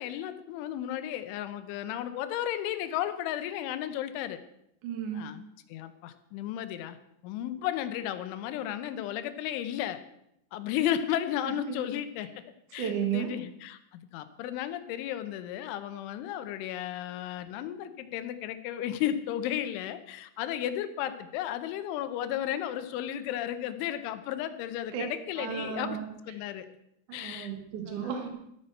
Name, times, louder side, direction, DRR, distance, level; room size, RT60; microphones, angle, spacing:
voice 1, 0.0-4.4 5.1-7.0 7.2-10.0 10.5-12.4 12.7-26.0 26.3-26.7 27.1-27.5 27.9-28.1, left 11 dB, 80° left, 11 dB, 3.1 m, -34 dB
voice 2, 4.8-5.3 11.4-11.8 12.8-13.3 24.9-25.0 25.4-26.1 27.1-28.3, right 8 dB, 55° right, 4 dB, 2.5 m, -33 dB
13.5 x 8.5 x 6.4 m, 0.77 s
omnidirectional pair, 5.7 m